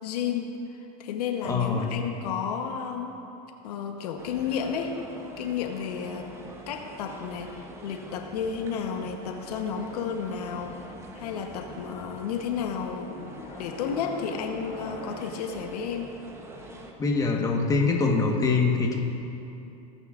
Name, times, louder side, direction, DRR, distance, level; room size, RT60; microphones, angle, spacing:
voice 1, 0.0-3.2 3.6-4.9 5.4-6.3 6.7-16.1, left 7 dB, 85° left, 4 dB, 1.0 m, -32 dB
voice 2, 1.4-1.9 17.0-19.0, left 4 dB, 15° left, 0 dB, 1.3 m, -24 dB
sound 1, 4.2-16.9, right 2 dB, 15° right, 0.9 m, -45 dB
sound 2, 9.9-11.9 13.2-15.8 16.3-17.4, left 3 dB, 40° left, 2.5 m, -45 dB
17.5 x 9.5 x 2.5 m, 2.8 s
supercardioid pair, 125°, 20 cm